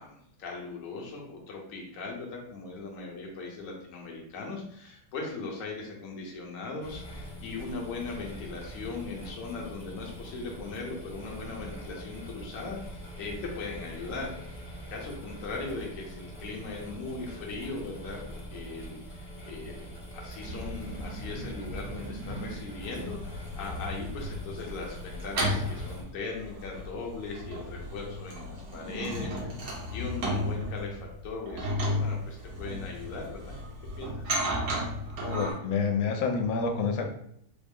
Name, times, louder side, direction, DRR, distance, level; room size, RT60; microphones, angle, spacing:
voice 1, 0.0-14.6 14.9-18.2 18.5-33.6 34.0-34.3, left 3 dB, 55° left, -1 dB, 1.0 m, -39 dB
sound 1, 6.8-26.0, equal, 25° left, 0.8 m, -43 dB
sound 2, 20.4-22.5 23.0-35.5, equal, 70° right, 1.6 m, -34 dB
voice 2, 35.2-37.1, left 5 dB, 85° left, 4 dB, 1.3 m, -28 dB
4.0 x 2.0 x 3.5 m, 0.70 s
omnidirectional pair, 2.1 m